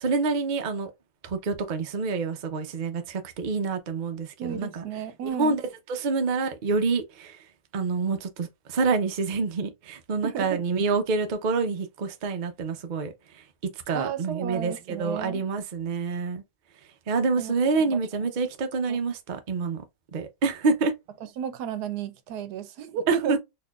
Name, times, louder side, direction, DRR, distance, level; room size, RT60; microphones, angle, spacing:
voice 1, 0.0-0.9 1.2-4.8 5.4-5.6 5.9-7.4 7.7-13.1 13.9-14.7 15.0-16.4 17.1-19.8 20.1-20.9 23.1-23.4, right 4 dB, 50° right, 0.5 m, -27 dB
voice 2, 4.4-5.6 10.2-10.6 13.9-15.4 17.4-17.5 17.8-18.3 18.9-19.0 21.2-23.4, right 8 dB, 85° right, 1.2 m, -33 dB
4.1 x 2.9 x 2.3 m
omnidirectional pair, 1.7 m